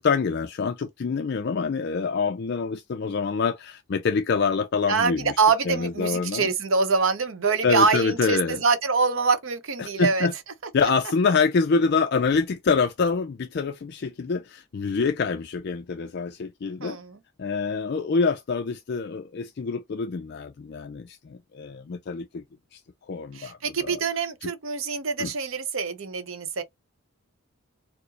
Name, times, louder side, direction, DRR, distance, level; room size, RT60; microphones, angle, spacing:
voice 1, 0.0-5.3 5.7-6.5 7.6-8.6 9.8-10.3 10.7-17.0 17.4-22.4 22.7-22.8 23.1-24.0 24.4-24.5 25.2-25.3, left 5 dB, 50° left, 0.4 m, -26 dB
voice 2, 4.9-10.3 16.8-17.2 23.3-26.6, right 4 dB, 65° right, 0.7 m, -24 dB
4.6 x 2.0 x 2.8 m
head